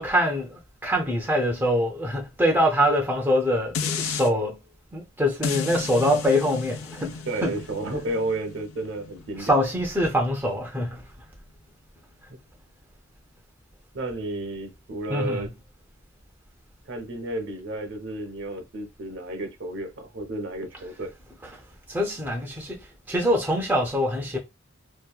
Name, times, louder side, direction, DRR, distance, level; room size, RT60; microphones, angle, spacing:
voice 1, 0.0-4.6 4.9-7.6 9.4-11.0 15.1-15.5 21.9-22.8 23.1-24.4, equal, 10° right, 0.4 m, -24 dB
sound 1, 3.7-4.3 5.4-10.6 11.0-11.1, left 5 dB, 75° left, 0.3 m, -34 dB
voice 2, 7.3-9.5 13.9-15.5 16.9-21.1, right 2 dB, 60° right, 0.6 m, -32 dB
2.7 x 2.1 x 2.3 m
head